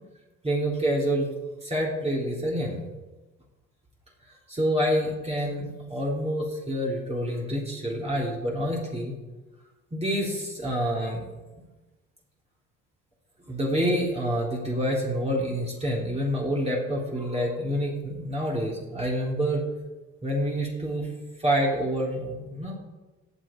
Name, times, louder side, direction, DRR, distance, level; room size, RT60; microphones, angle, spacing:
voice 1, 0.4-1.3 1.6-2.8 4.5-9.1 9.9-11.2 13.5-19.6 20.2-21.1 21.4-22.7, equal, 20° right, -3 dB, 3.3 m, -27 dB
17.5 x 6.8 x 4.5 m, 1.2 s
cardioid pair, 90°, 30 cm